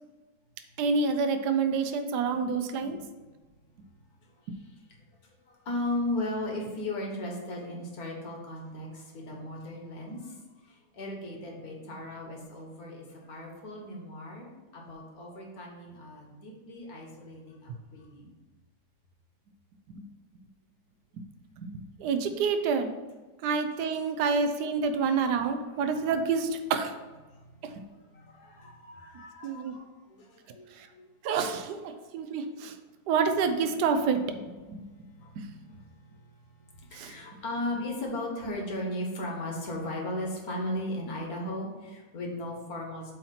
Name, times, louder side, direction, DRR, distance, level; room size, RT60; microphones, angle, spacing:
voice 1, 0.8-3.0 20.0-20.1 21.6-22.9 23.4-26.9 29.4-29.7 30.8-30.9 31.2-32.7 33.1-34.4 34.7-34.8 35.4-35.5 36.9-37.1, right 5 dB, 75° right, 7 dB, 1.2 m, -28 dB
voice 2, 4.5-5.0 5.5-18.4 26.0-26.1 27.3-27.8 28.1-30.7 30.9-31.1 31.7-31.8 32.3-32.5 35.0-36.4 36.7-43.1, left 1 dB, 60° left, -1 dB, 1.8 m, -37 dB
7.8 x 2.9 x 5.7 m, 1.3 s
omnidirectional pair, 1.8 m